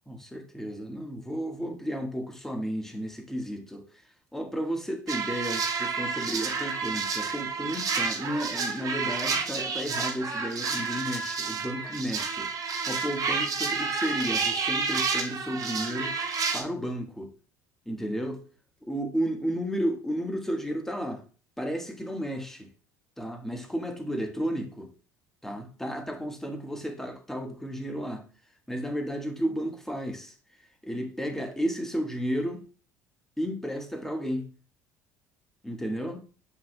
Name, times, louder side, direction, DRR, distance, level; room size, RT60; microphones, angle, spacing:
voice 1, 0.1-4.0 4.3-16.2 16.5-17.3 17.8-18.4 18.8-21.2 21.6-22.7 23.2-24.9 25.4-28.3 28.7-30.3 30.8-32.6 33.4-34.5 35.6-36.3, equal, 5° left, 1.5 m, -33 dB
sound 1, 5.1-16.6, right 5 dB, 40° right, 1.3 m, -30 dB
7.2 x 5.9 x 2.3 m
hypercardioid pair, 70°, 9 cm